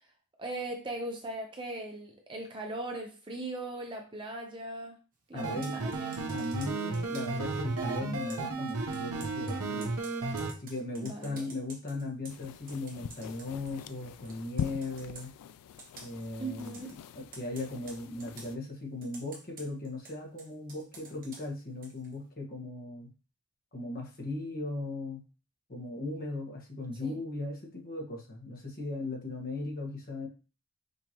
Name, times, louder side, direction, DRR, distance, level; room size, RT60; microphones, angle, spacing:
voice 1, 0.4-5.0 5.3-6.1 11.0-11.5 16.4-16.9 27.0-27.1, right 2 dB, 20° right, 3 dB, 0.6 m, -39 dB
voice 2, 5.3-5.8 6.3-9.9 10.6-15.3 16.0-16.9 17.1-23.1 23.7-25.2 25.7-30.3, left 2 dB, 40° left, -1 dB, 1.3 m, -38 dB
sound 1, 5.4-10.5, right 3 dB, 75° right, 0.8 m, -34 dB
Computer keyboard, 5.5-7.5 8.3-14.0 14.3-15.3 15.8-16.3 16.6-17.0 17.3-18.5 19.0-22.1, right 3 dB, 40° right, 1.2 m, -51 dB
sound 2, 12.3-18.6, left 8 dB, 85° left, 0.3 m, -43 dB
5.2 x 2.9 x 2.9 m, 0.34 s
head